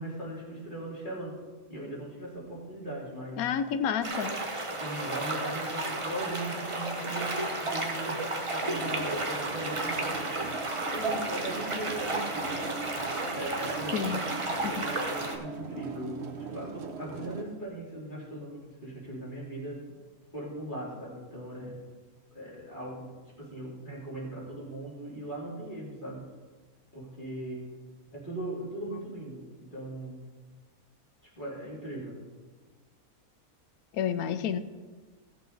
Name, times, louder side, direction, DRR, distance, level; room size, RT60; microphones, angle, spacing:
voice 1, 0.0-1.4 1.7-3.4 4.8-10.2 10.8-12.6 13.3-19.9 20.3-21.8 22.3-26.4 26.9-27.8 28.1-30.3 31.3-32.2, right 1 dB, 35° left, -6 dB, 3.0 m, -39 dB
voice 2, 3.4-4.4 13.9-14.2 14.6-14.9 28.9-29.0 33.9-34.6, left 7 dB, 80° left, 12 dB, 1.1 m, -30 dB
sound 1, 4.0-15.4, right 2 dB, 25° right, 0.8 m, -32 dB
sound 2, 8.7-17.4, right 4 dB, 55° right, 1.1 m, -41 dB
16.0 x 6.8 x 4.0 m, 1.3 s
omnidirectional pair, 1.5 m